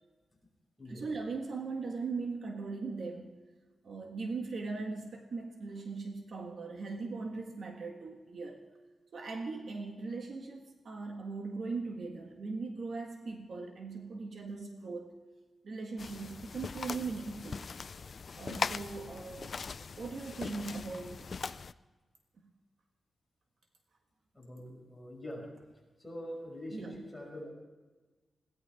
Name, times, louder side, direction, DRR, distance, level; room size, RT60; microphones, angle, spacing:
voice 1, 0.8-3.3 3.8-8.6 9.1-15.1 15.6-17.6 18.4-21.3 26.7-27.0, right 4 dB, 55° right, 3 dB, 1.7 m, -39 dB
sound 1, 16.0-21.7, left 5 dB, 45° left, 0.4 m, -40 dB
voice 2, 24.3-25.5 26.0-27.5, equal, 5° left, -3 dB, 5.7 m, -44 dB
21.5 x 17.5 x 3.6 m, 1.3 s
wide cardioid pair, 165°, 0 cm